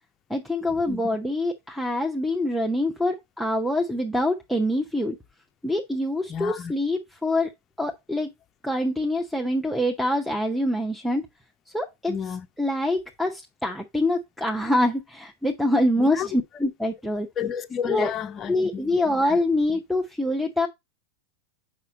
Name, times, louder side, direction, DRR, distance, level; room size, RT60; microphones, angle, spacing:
voice 1, 0.3-5.1 5.6-7.5 7.8-8.3 8.6-11.2 11.7-12.1 12.6-17.3 17.9-18.1 18.5-20.7, left 1 dB, ahead, 0.8 m, -25 dB
voice 2, 6.3-6.7 12.1-12.5 16.0-16.3 17.4-18.9 19.2-19.4, left 8 dB, 25° left, 0.6 m, -31 dB
6.9 x 5.0 x 4.0 m
figure-of-eight pair, 90°, 0 cm